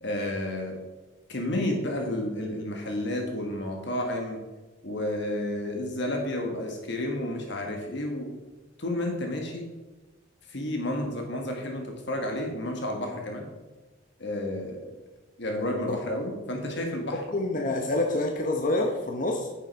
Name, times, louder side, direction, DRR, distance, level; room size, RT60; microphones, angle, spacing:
voice 1, 0.0-0.8 1.3-4.4 4.8-8.3 8.8-9.7 10.5-13.5 14.2-14.8 15.4-17.2, left 1 dB, 60° left, 2 dB, 1.5 m, -31 dB
voice 2, 17.3-19.5, left 2 dB, 40° left, 1 dB, 0.9 m, -27 dB
9.3 x 7.4 x 4.7 m, 1.2 s
head